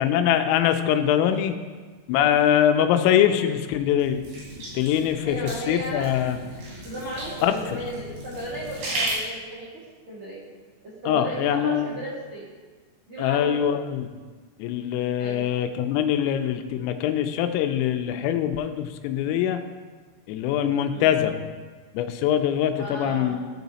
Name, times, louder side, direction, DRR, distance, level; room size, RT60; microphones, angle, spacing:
voice 1, 0.0-1.6 2.1-4.2 4.7-5.4 5.7-6.4 7.4-7.5 11.1-12.0 13.2-14.1 14.6-19.6 20.3-21.3 21.9-23.4, left 10 dB, 90° left, 7 dB, 3.3 m, -23 dB
sound 1, 4.0-9.1, right 1 dB, 60° right, 5.0 m, -35 dB
voice 2, 5.2-6.1 6.8-10.4 10.8-12.5 13.1-13.7 15.2-15.5 20.8-21.1 22.8-23.3, right 1 dB, 80° right, -9 dB, 1.2 m, -35 dB
14.5 x 4.9 x 4.0 m, 1.4 s
omnidirectional pair, 5.8 m